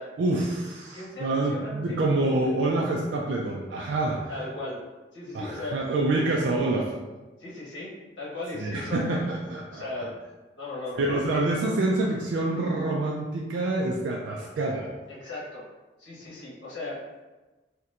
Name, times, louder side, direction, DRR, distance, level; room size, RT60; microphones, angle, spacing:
voice 1, 0.2-4.2 5.3-6.9 8.5-10.0 11.0-14.9, right 2 dB, 85° right, -2 dB, 0.4 m, -27 dB
voice 2, 0.9-2.5 4.3-4.8 5.1-5.8 7.4-9.3 9.7-10.1 10.6-11.4 15.1-15.6 16.0-17.0, left 2 dB, 90° left, -6 dB, 1.2 m, -37 dB
4.2 x 2.1 x 2.4 m, 1.2 s
head